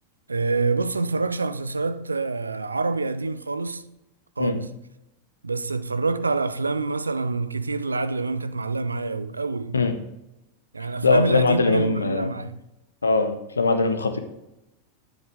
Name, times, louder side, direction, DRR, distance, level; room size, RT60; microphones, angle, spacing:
voice 1, 0.3-3.8 4.4-4.8 5.4-9.8 10.7-12.6, right 3 dB, 80° right, 0.5 m, -26 dB
voice 2, 11.0-12.3 13.0-14.2, left 3 dB, 75° left, 1.1 m, -21 dB
10.5 x 7.8 x 3.6 m
figure-of-eight pair, 90°, 0 cm